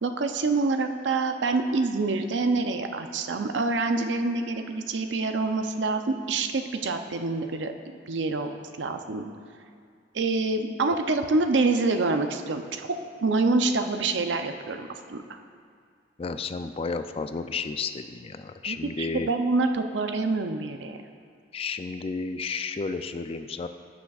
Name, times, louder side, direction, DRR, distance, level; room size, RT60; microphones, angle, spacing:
voice 1, 0.0-9.3 10.1-15.2 18.6-21.0, right 3 dB, 85° right, 7 dB, 0.6 m, -26 dB
voice 2, 16.2-19.3 21.5-23.7, left 4 dB, 35° left, 9 dB, 0.3 m, -32 dB
16.0 x 6.2 x 2.4 m, 2.2 s
head